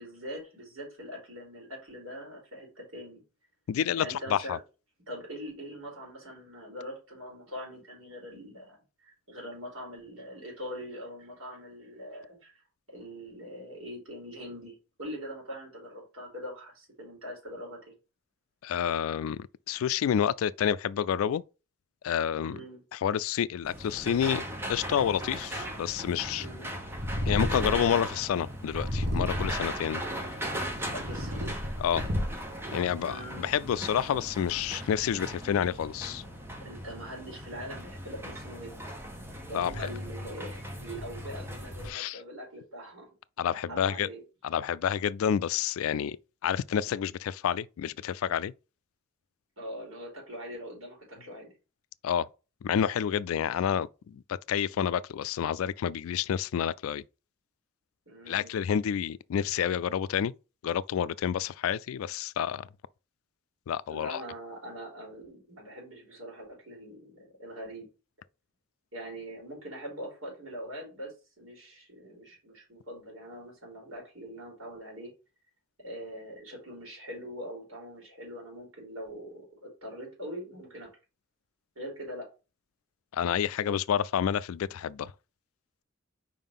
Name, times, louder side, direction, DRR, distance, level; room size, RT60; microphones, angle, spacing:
voice 1, 0.0-3.2 3.9-4.6 5.1-12.5 12.9-17.9 22.5-22.8 26.4-26.7 30.9-31.6 33.0-33.5 36.6-38.8 39.5-43.1 43.5-44.2 49.6-51.5 58.1-58.6 63.9-67.9 68.9-75.1 75.8-80.9 81.8-82.3, equal, 70° right, 3.6 m, -42 dB
voice 2, 3.7-4.6 18.6-21.4 22.0-22.6 22.9-24.4 24.7-26.5 27.2-30.0 31.8-32.0 32.7-36.2 39.5-39.9 41.9-42.2 43.4-44.1 44.4-46.2 46.4-48.5 52.0-52.3 52.6-57.0 58.3-60.3 60.6-62.7 63.7-64.2 83.1-85.1, left 8 dB, 85° left, 0.3 m, -29 dB
sound 1, 23.6-41.9, equal, 10° right, 1.1 m, -38 dB
Purr, 26.9-28.0 28.7-29.8 30.5-32.6, left 1 dB, 55° right, 1.3 m, -31 dB
4.9 x 3.7 x 5.4 m
head